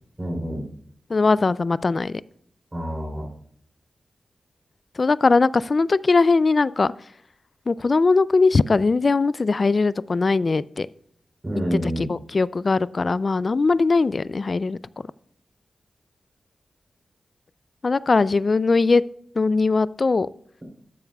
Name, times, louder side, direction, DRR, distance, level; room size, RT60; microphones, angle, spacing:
voice 1, 0.2-0.7 2.7-3.3 11.4-12.1, equal, 30° right, -3 dB, 3.4 m, -27 dB
voice 2, 1.1-2.2 5.0-6.9 7.7-10.9 11.7-14.8 17.8-19.0 19.4-20.3, left 3 dB, 55° left, 19 dB, 0.3 m, -20 dB
13.0 x 7.2 x 2.3 m, 0.64 s
cardioid pair, 55°, 0 cm